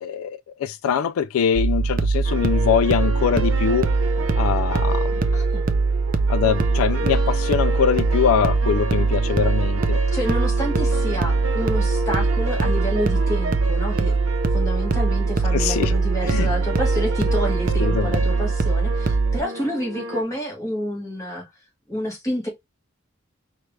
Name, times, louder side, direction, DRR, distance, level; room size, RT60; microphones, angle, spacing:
voice 1, 0.0-3.9 4.4-5.2 6.3-10.0 15.5-15.9 16.2-16.5 17.8-18.2, left 8 dB, 90° left, 0.3 m, -23 dB
sound 1, 1.6-19.4, right 4 dB, 40° right, 0.5 m, -22 dB
sound 2, 2.2-20.2, equal, 80° right, 0.9 m, -31 dB
voice 2, 5.3-5.7 10.1-14.2 14.5-21.5 21.9-22.5, equal, 15° left, 1.5 m, -29 dB
4.5 x 2.4 x 3.2 m
head